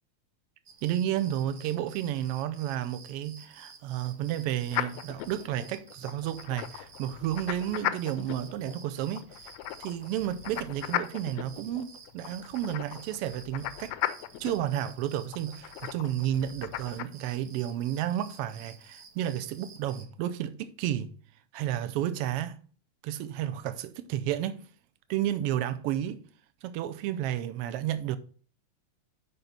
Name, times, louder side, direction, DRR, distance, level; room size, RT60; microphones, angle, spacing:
sound 1, 0.7-20.1, right 5 dB, 60° right, 1.5 m, -52 dB
voice 1, 0.8-9.3 9.8-14.0 14.4-21.1 21.5-22.6 23.0-24.7 25.1-26.2 26.6-28.2, right 11 dB, 80° right, 1.3 m, -32 dB
sound 2, 4.7-17.1, left 13 dB, 80° left, 1.6 m, -37 dB
6.7 x 5.2 x 5.8 m
omnidirectional pair, 3.3 m